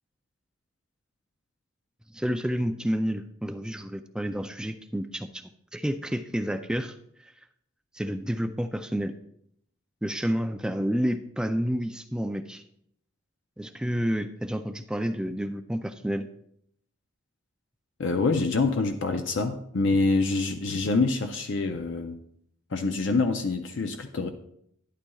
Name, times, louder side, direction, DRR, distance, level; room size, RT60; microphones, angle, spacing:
voice 1, 2.1-7.0 7.2-7.3 7.9-9.2 10.0-12.6 13.6-16.3, equal, 5° right, 8 dB, 0.3 m, -30 dB
voice 2, 18.0-22.2 22.7-24.3, left 3 dB, 60° left, 6 dB, 0.6 m, -26 dB
11.5 x 11.0 x 2.3 m, 0.71 s
head